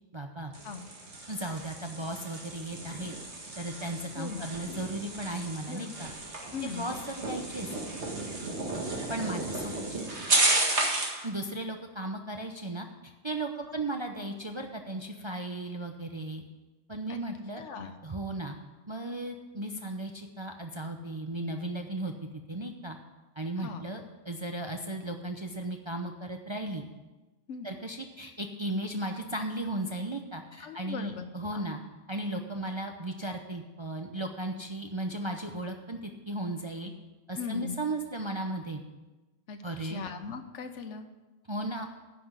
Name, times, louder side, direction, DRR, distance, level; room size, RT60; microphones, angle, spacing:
voice 1, 0.1-0.5 1.3-3.1 3.6-6.1 6.6-7.7 9.1-10.1 11.2-16.4 16.9-17.6 18.0-18.6 18.9-22.1 22.5-23.0 23.4-26.8 27.6-31.8 32.1-36.9 37.3-38.8 39.6-40.0 41.5-41.9, right 1 dB, 30° right, 3 dB, 0.7 m, -36 dB
sound 1, 0.5-11.2, right 2 dB, 65° right, 2.1 m, -33 dB
voice 2, 4.1-4.5 5.7-6.1 6.5-6.9 17.1-17.2 17.6-17.9 23.6-23.8 27.5-27.7 30.6-31.3 31.5-31.7 37.3-37.8 39.5-41.1, left 6 dB, 70° left, 9 dB, 1.2 m, -39 dB
10.5 x 6.0 x 8.0 m, 1.1 s
omnidirectional pair, 1.3 m